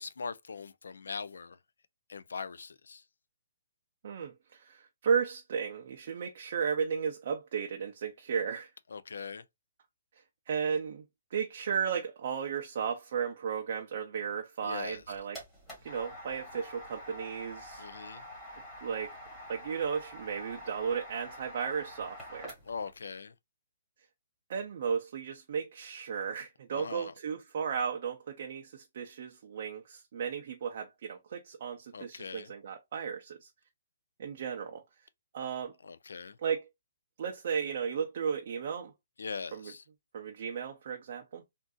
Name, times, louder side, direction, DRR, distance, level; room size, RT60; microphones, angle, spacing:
voice 1, 0.0-1.6 2.1-3.0 8.9-9.4 14.6-15.0 17.8-18.2 22.6-23.3 26.7-27.1 31.9-32.5 35.8-36.4 39.2-39.8, left 5 dB, 85° left, 0.4 m, -41 dB
voice 2, 4.0-8.7 10.5-11.0 11.3-15.4 15.8-17.9 18.8-19.2 19.5-22.5 24.5-33.5 34.2-34.8 35.3-35.8 36.4-36.7 37.2-38.9 39.5-39.7 40.1-41.4, right 6 dB, 40° right, 0.5 m, -34 dB
sound 1, 14.9-22.9, equal, 5° left, 1.2 m, -47 dB
3.6 x 2.5 x 2.2 m
hypercardioid pair, 175°, 0 cm